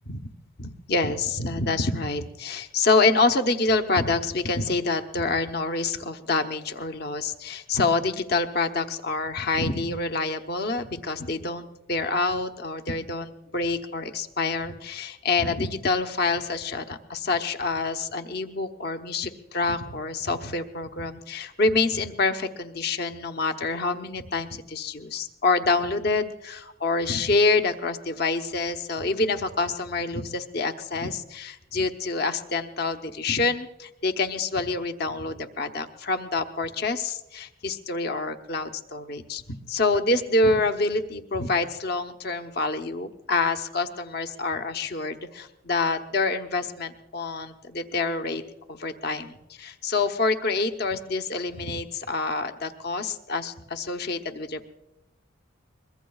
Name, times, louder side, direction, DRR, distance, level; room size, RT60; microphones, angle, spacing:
voice 1, 0.6-39.4 39.7-48.4 48.7-54.6, left 3 dB, 55° left, 7 dB, 0.9 m, -27 dB
23.5 x 22.0 x 2.4 m, 0.89 s
head